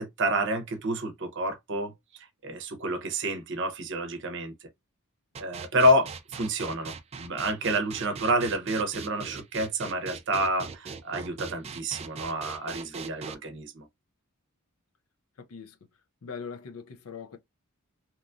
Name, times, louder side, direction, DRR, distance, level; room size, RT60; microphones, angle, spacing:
voice 1, 0.0-1.9 2.4-4.5 5.4-13.8, right 1 dB, 55° right, 0.7 m, -28 dB
sound 1, 5.3-13.3, right 5 dB, 30° right, 0.3 m, -40 dB
voice 2, 15.4-15.8 16.2-17.4, left 6 dB, 70° left, 0.5 m, -41 dB
2.9 x 2.3 x 2.4 m
head